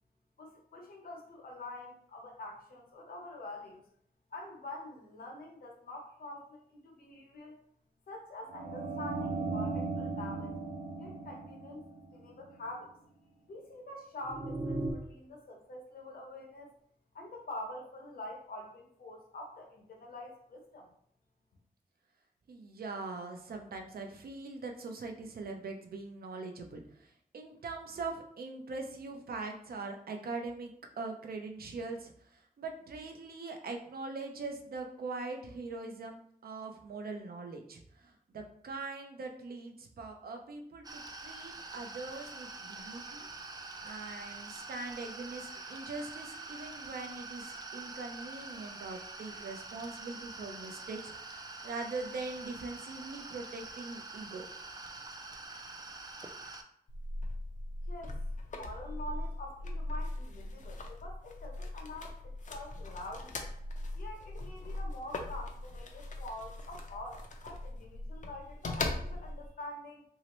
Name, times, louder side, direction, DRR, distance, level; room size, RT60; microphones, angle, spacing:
voice 1, 0.4-3.8 4.3-7.6 8.1-10.6 11.0-11.8 12.1-12.9 13.5-16.7 17.1-20.9 57.9-58.3 58.5-63.4 63.9-70.0, left 1 dB, 70° left, 0 dB, 0.9 m, -46 dB
sound 1, 8.5-12.4 14.2-14.9, right 3 dB, 45° right, 0.8 m, -37 dB
voice 2, 22.5-43.3 43.8-54.5, right 3 dB, 70° right, 4 dB, 0.6 m, -42 dB
sound 2, 40.8-56.6, right 3 dB, 25° right, 0.3 m, -45 dB
sound 3, 56.9-69.5, left 2 dB, 50° left, 0.5 m, -40 dB
3.0 x 2.8 x 3.0 m, 0.65 s
wide cardioid pair, 120°, 16 cm